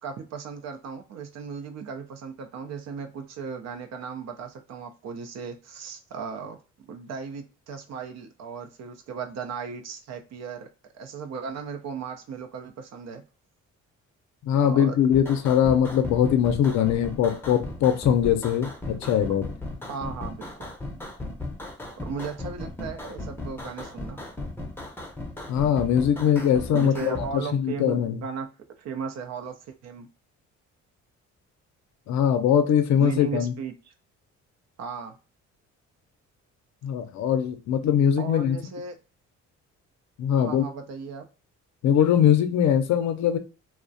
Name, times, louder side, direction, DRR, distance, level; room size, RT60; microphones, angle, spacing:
voice 1, 0.0-6.6 6.9-10.7 10.9-13.2 14.7-14.9 19.9-20.7 22.0-24.2 26.7-28.5 28.8-30.1 33.0-33.9 34.8-35.2 38.2-39.0 40.3-41.3, right 5 dB, 60° right, 0.5 m, -36 dB
voice 2, 14.5-19.5 25.5-28.2 32.1-33.5 36.8-38.6 40.2-40.6 41.8-43.4, left 9 dB, 65° left, 0.5 m, -22 dB
sound 1, 15.1-27.3, left 2 dB, 5° left, 0.6 m, -36 dB
2.3 x 2.1 x 2.5 m
cardioid pair, 90°, 30 cm